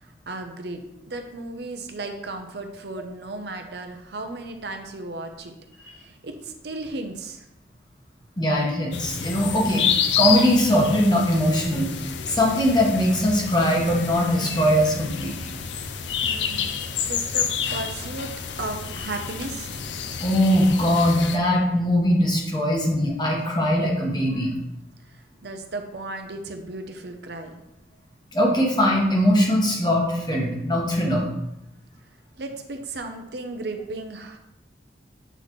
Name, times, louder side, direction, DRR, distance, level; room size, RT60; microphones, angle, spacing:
voice 1, 0.0-0.8 1.1-5.5 5.8-7.5 16.2-18.3 18.6-19.7 25.4-27.6 32.4-34.4, right 2 dB, 70° right, 5 dB, 0.7 m, -35 dB
voice 2, 8.4-9.9 10.2-11.9 12.3-15.5 20.2-24.5 28.3-31.3, equal, 25° left, -1 dB, 1.1 m, -21 dB
sound 1, 8.9-21.4, left 7 dB, 85° left, 0.5 m, -29 dB
7.9 x 4.1 x 3.1 m, 0.87 s
head